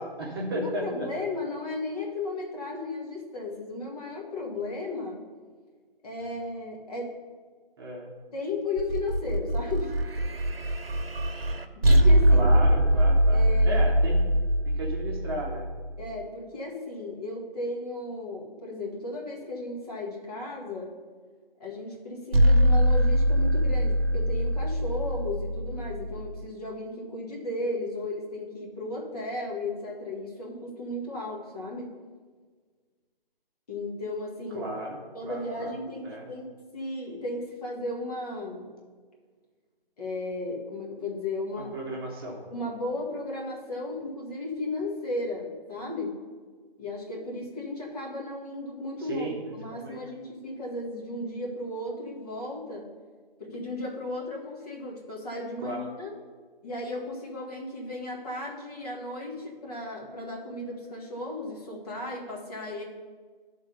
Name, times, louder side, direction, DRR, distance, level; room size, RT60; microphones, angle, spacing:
voice 1, 0.0-1.1 7.8-8.1 12.3-14.2 14.6-15.7 23.4-23.7 34.5-35.7 36.0-36.3 41.7-42.4 49.0-50.0 55.6-55.9, right 1 dB, 25° right, -2 dB, 1.0 m, -35 dB
voice 2, 0.5-5.2 6.0-7.1 8.3-10.0 11.8-12.5 13.3-13.8 16.0-20.9 21.6-31.9 33.7-34.8 35.1-38.7 40.0-41.7 42.5-46.2 46.8-52.9 53.4-56.1 56.6-62.8, left 2 dB, 40° left, -2 dB, 1.8 m, -35 dB
sound 1, 8.8-16.1 22.3-26.4, equal, 80° right, 0.9 m, -23 dB
11.0 x 3.8 x 5.4 m, 1.5 s
figure-of-eight pair, 155°, 29 cm